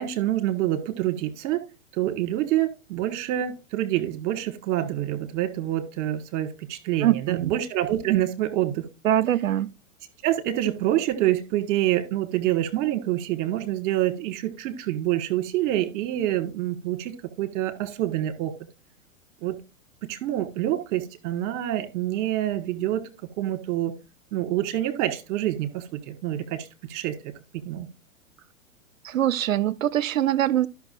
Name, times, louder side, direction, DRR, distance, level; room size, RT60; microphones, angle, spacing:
voice 1, 0.0-1.6 1.9-8.9 10.2-18.5 19.4-19.6 20.0-23.1 23.4-23.9 24.3-27.3 27.6-27.9, right 13 dB, 40° right, 1.7 m, -26 dB
voice 2, 7.0-7.5 9.0-9.7 29.0-30.7, right 12 dB, 70° right, 0.6 m, -23 dB
13.5 x 6.1 x 2.5 m
figure-of-eight pair, 105°, 41 cm